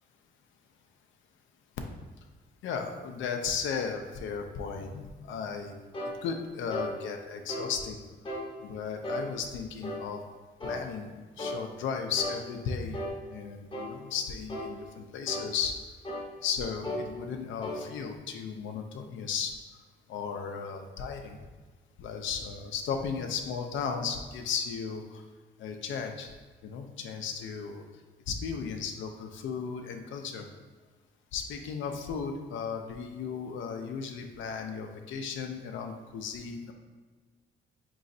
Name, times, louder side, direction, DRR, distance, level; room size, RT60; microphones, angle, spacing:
voice 1, 2.6-5.7 6.2-8.0 8.6-10.2 10.6-13.0 13.3-15.8 16.4-19.5 20.1-21.4 22.0-25.2 25.6-26.3 26.6-27.8 28.3-30.5 31.3-36.7, left 6 dB, 75° left, 4 dB, 0.5 m, -35 dB
sound 1, 5.9-6.2 6.7-6.9 7.5-7.7 8.2-8.5 9.0-9.3 9.8-10.1 10.6-10.8 11.4-11.6 12.2-12.4 12.9-13.2 13.7-13.9 14.5-14.7 15.3-15.5 16.0-16.3 16.8-17.1 17.6-17.8, equal, 25° left, 0.7 m, -35 dB
3.9 x 3.0 x 2.6 m, 1.4 s
cardioid pair, 90°, 20 cm